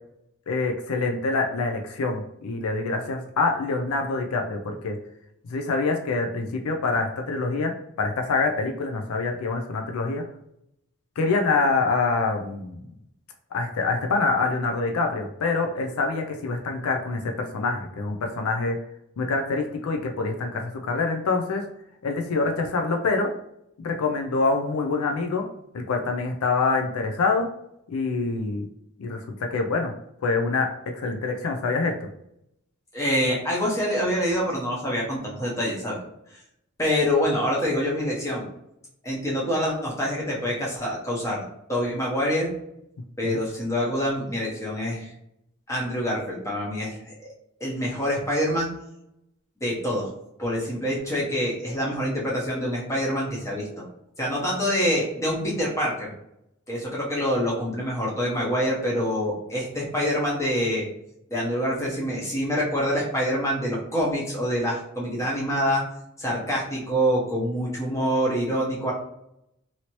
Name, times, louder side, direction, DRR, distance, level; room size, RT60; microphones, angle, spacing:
voice 1, 0.5-5.0 5.4-7.7 8.0-10.2 11.2-12.8 13.5-18.8 19.2-21.6 22.0-23.3 23.8-25.5 25.7-27.5 27.9-28.7 29.0-29.9 30.2-32.1 43.2-43.4, left 3 dB, 80° left, 3 dB, 0.4 m, -25 dB
voice 2, 32.9-36.0 36.8-38.4 39.0-41.4 41.7-42.5 43.2-45.1 45.7-47.3 47.6-48.7 49.6-50.1 50.4-53.8 54.2-56.1 56.7-60.9 61.3-65.8 66.2-68.9, equal, 15° left, -5 dB, 0.9 m, -26 dB
2.9 x 2.7 x 3.0 m, 0.78 s
head